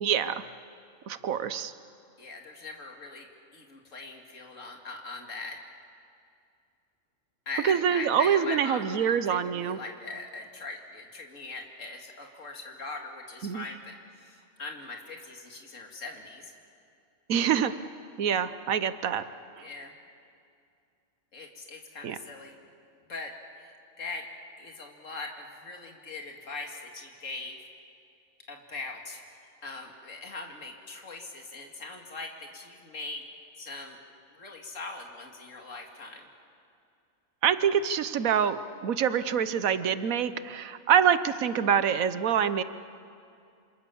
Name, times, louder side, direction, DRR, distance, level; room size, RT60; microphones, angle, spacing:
voice 1, 0.0-0.4 1.1-1.7 7.6-9.8 13.4-13.6 17.3-17.7 18.2-19.2 22.0-22.2 37.4-38.6 38.8-42.6, right 8 dB, 85° right, 13 dB, 1.3 m, -25 dB
voice 2, 2.2-5.6 7.5-16.5 19.6-19.9 21.3-22.6 23.1-24.3 24.6-27.6 28.5-33.3 33.6-34.0 34.3-36.3, left 3 dB, 65° left, 2 dB, 2.7 m, -41 dB
27.5 x 27.0 x 7.1 m, 2.4 s
omnidirectional pair, 1.4 m